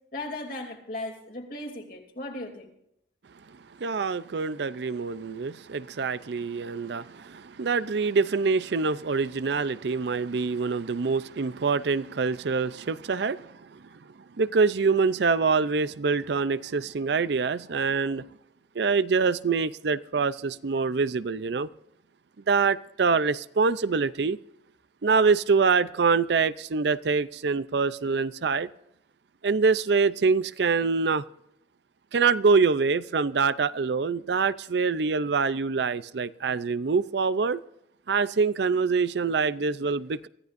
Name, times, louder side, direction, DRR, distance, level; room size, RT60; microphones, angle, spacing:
voice 1, 0.1-2.7, left 1 dB, 50° left, 2.9 m, -37 dB
voice 2, 3.8-13.8 14.4-18.2 18.8-21.7 22.5-24.4 25.0-28.7 29.4-31.2 32.1-37.6 38.1-40.3, right 4 dB, 65° right, 0.5 m, -25 dB
24.0 x 14.5 x 2.6 m
head